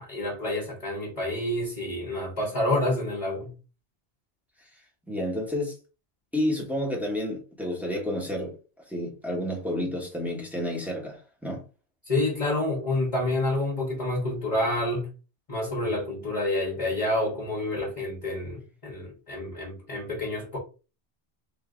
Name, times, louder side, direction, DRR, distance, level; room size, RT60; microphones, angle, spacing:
voice 1, 0.0-3.5 12.0-15.1 15.5-20.6, left 1 dB, 35° left, 1.1 m, -28 dB
voice 2, 5.1-5.7 6.3-8.5 8.9-11.6, left 1 dB, ahead, 1.1 m, -30 dB
3.5 x 2.7 x 3.7 m
omnidirectional pair, 1.1 m